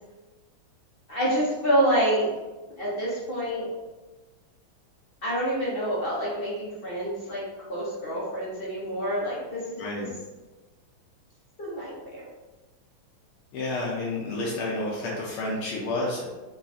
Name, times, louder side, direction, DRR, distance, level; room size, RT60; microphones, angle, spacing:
voice 1, 1.1-2.3 2.8-3.7 5.2-7.4 7.7-9.6 10.0-10.1 11.6-12.2, right 1 dB, 40° left, -7 dB, 0.9 m, -27 dB
voice 2, 9.8-10.1 13.5-16.2, left 2 dB, 80° left, -4 dB, 1.6 m, -30 dB
5.0 x 2.4 x 4.1 m, 1.2 s
omnidirectional pair, 2.3 m